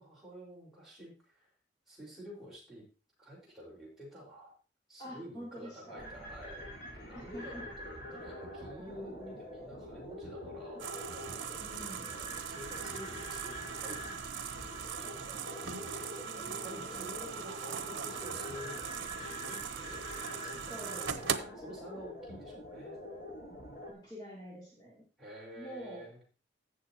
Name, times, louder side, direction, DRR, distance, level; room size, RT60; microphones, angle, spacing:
voice 1, 0.0-1.5 1.9-2.8 3.2-4.5 4.9-10.9 11.8-14.0 15.0-15.1 15.8-20.1 20.4-23.0 25.2-26.2, equal, ahead, -6 dB, 4.8 m, -49 dB
voice 2, 5.0-6.1 7.1-7.6 11.6-12.1 16.4-17.2 20.7-21.6 23.9-25.0 25.6-26.1, equal, 25° left, -6 dB, 3.2 m, -47 dB
sound 1, 6.0-23.9, left 1 dB, 60° left, 4.2 m, -46 dB
sound 2, 10.8-21.4, right 7 dB, 90° right, 0.8 m, -40 dB
16.0 x 6.6 x 2.9 m, 0.34 s
head